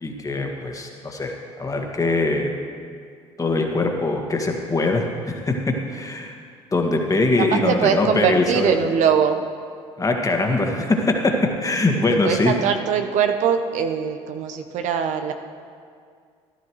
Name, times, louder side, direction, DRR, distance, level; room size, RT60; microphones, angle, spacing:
voice 1, 0.0-1.3 1.6-2.5 3.4-5.5 5.9-6.4 6.7-8.7 10.0-11.0 11.6-12.5, left 2 dB, 25° left, 2 dB, 1.8 m, -22 dB
voice 2, 7.4-9.4 12.1-15.3, right 7 dB, 65° right, 7 dB, 0.8 m, -22 dB
14.5 x 12.0 x 3.2 m, 2.1 s
hypercardioid pair, 60°, 13 cm